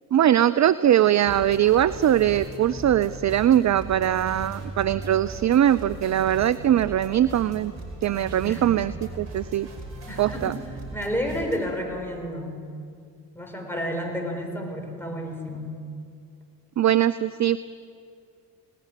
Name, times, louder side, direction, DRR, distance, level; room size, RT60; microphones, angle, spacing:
voice 1, 0.1-7.7 8.0-9.7 10.2-10.6 16.8-17.6, right 11 dB, 35° right, 15 dB, 0.6 m, -21 dB
sound 1, 1.2-11.6, right 2 dB, 60° right, 4.8 m, -38 dB
voice 2, 10.1-10.6 10.9-12.6 13.3-15.7, equal, 5° left, 2 dB, 6.2 m, -31 dB
18.5 x 15.5 x 9.8 m, 2.4 s
hypercardioid pair, 50°, 49 cm